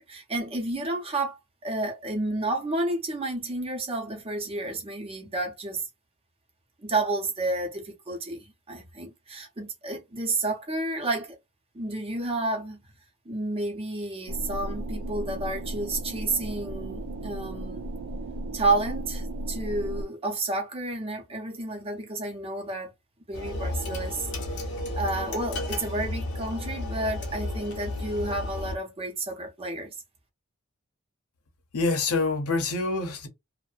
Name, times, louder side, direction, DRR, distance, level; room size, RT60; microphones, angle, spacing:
voice 1, 0.0-5.9 6.8-11.4 11.7-12.8 13.2-18.0 18.5-22.9 23.3-24.3 25.0-29.9, right 2 dB, 25° right, 0.7 m, -31 dB
sound 1, 14.3-20.0, right 1 dB, 90° right, 0.4 m, -35 dB
sound 2, 23.3-28.8, left 1 dB, 55° left, 0.8 m, -33 dB
voice 2, 31.7-33.3, left 3 dB, 90° left, 0.7 m, -26 dB
2.6 x 2.1 x 2.4 m
head